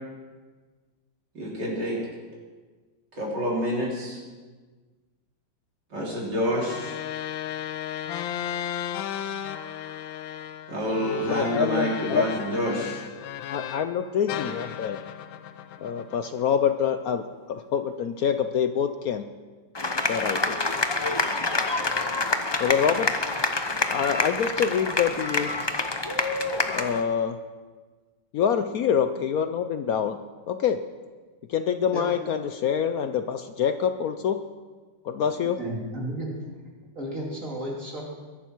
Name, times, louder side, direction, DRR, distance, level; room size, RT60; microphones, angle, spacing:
voice 1, 1.3-2.0 3.1-4.2 5.9-7.0 10.7-13.0 14.8-14.9, equal, 65° right, -3 dB, 4.0 m, -28 dB
sound 1, 6.5-13.9 14.3-16.7, left 10 dB, 90° left, 1.5 m, -35 dB
voice 2, 11.3-12.3 13.5-15.0 15.8-19.3 20.0-20.6 22.6-23.2 23.9-25.5 26.7-27.4 28.3-30.2 30.5-30.8 31.5-34.4 35.0-35.6, left 7 dB, 70° left, 9 dB, 0.9 m, -26 dB
sound 2, 19.7-27.0, left 2 dB, 30° left, 0.5 m, -27 dB
voice 3, 35.2-36.5 36.9-38.1, right 1 dB, 45° right, -3 dB, 3.2 m, -33 dB
22.0 x 11.5 x 4.5 m, 1.4 s
omnidirectional pair, 2.0 m